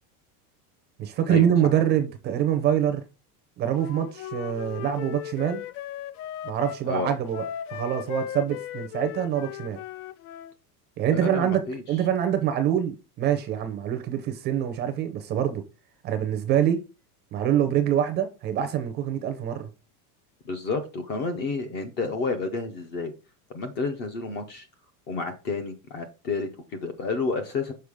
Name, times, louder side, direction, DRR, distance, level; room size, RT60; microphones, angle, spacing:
voice 1, 1.0-3.0 3.6-5.6 6.4-9.8 11.0-11.6 11.9-15.6 16.0-16.8 17.3-19.7, right 10 dB, 25° right, 0.6 m, -25 dB
Wind instrument woodwind instrument, 3.7-6.8 7.3-10.5, left 11 dB, 65° left, 0.6 m, -37 dB
voice 2, 11.1-11.8 20.5-23.1 23.5-24.7 25.1-27.7, left 3 dB, 25° left, 0.5 m, -30 dB
6.5 x 4.7 x 3.5 m
supercardioid pair, 170°, 46 cm